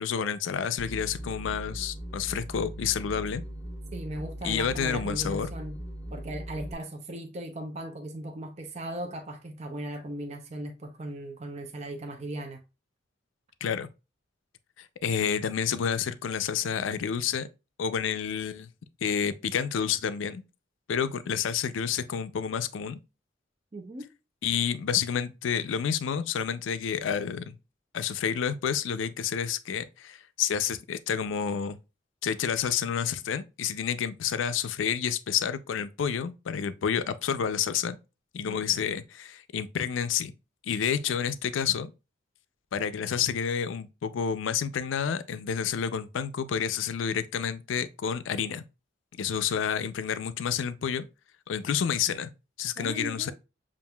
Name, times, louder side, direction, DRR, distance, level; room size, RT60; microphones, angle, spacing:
voice 1, 0.0-3.4 4.4-5.5 13.6-13.9 14.8-17.5 17.8-18.7 19.0-20.4 20.9-23.0 24.4-27.6 27.9-31.8 32.2-38.0 38.3-40.3 40.6-41.9 42.7-48.6 49.2-51.0 51.5-52.3 52.6-53.3, left 7 dB, 80° left, 0.4 m, -29 dB
sound 1, 0.8-6.7, equal, 15° right, 1.5 m, -39 dB
voice 2, 3.9-5.8 6.1-12.6 23.7-24.1 38.5-38.8 52.8-53.3, right 1 dB, 35° right, 0.6 m, -38 dB
7.1 x 2.5 x 2.2 m
head